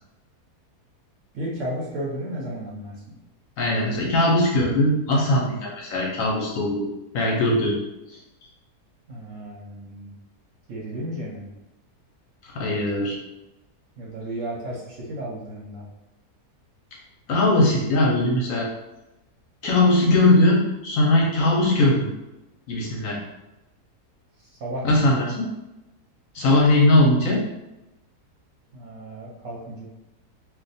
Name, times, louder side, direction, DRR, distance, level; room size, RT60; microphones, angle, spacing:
voice 1, 1.3-3.0 9.1-10.1 10.7-11.5 14.0-15.9 24.4-25.0 28.7-29.9, right 1 dB, 60° right, -4 dB, 0.9 m, -33 dB
voice 2, 3.6-6.9 7.1-7.8 12.5-13.2 17.3-18.7 19.6-22.1 22.7-23.2 24.8-25.5 26.3-27.4, left 1 dB, 65° left, -2 dB, 0.9 m, -20 dB
2.5 x 2.2 x 3.9 m, 0.95 s
omnidirectional pair, 1.7 m